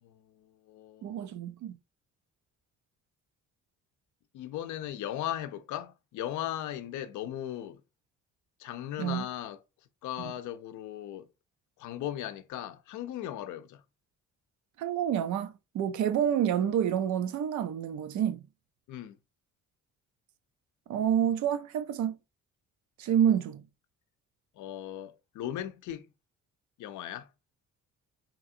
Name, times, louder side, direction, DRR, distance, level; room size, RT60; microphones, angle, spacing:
voice 1, 0.0-1.1 4.3-7.8 8.6-9.6 10.0-11.3 11.8-13.8 18.9-19.2 24.6-26.1 26.8-27.3, left 12 dB, 75° left, 0.5 m, -37 dB
voice 2, 1.0-1.8 9.0-9.2 10.2-10.3 14.8-18.5 20.9-22.1 23.0-23.6, right 9 dB, 70° right, 0.5 m, -28 dB
2.9 x 2.4 x 2.6 m
cardioid pair, 90°, 30 cm